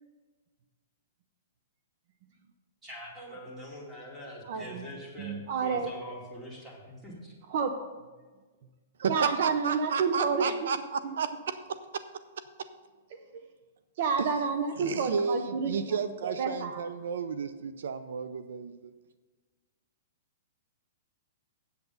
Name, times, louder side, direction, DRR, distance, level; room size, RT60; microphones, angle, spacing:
voice 1, 2.8-7.3, equal, 10° right, -3 dB, 2.4 m, -44 dB
voice 2, 4.5-4.9 5.2-5.9 7.5-7.7 9.1-10.5 13.1-13.4 14.0-16.8, right 5 dB, 55° right, 7 dB, 0.8 m, -30 dB
voice 3, 9.0-11.3 12.6-12.7 14.8-18.9, right 6 dB, 80° right, 12 dB, 0.5 m, -32 dB
8.2 x 8.0 x 5.4 m, 1.3 s
hypercardioid pair, 150°, 0 cm